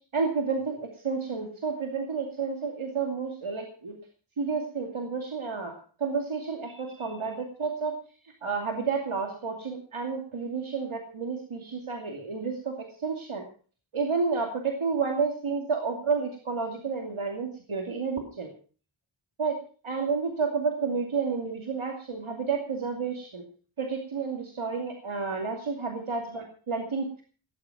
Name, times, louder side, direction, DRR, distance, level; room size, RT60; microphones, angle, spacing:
voice 1, 0.1-3.9 4.4-7.9 8.4-13.4 13.9-18.5 19.4-19.6 19.8-23.4 23.8-27.2, right 5 dB, 80° right, 2 dB, 2.6 m, -30 dB
17.5 x 10.5 x 5.9 m, 0.41 s
wide cardioid pair, 75°, 48 cm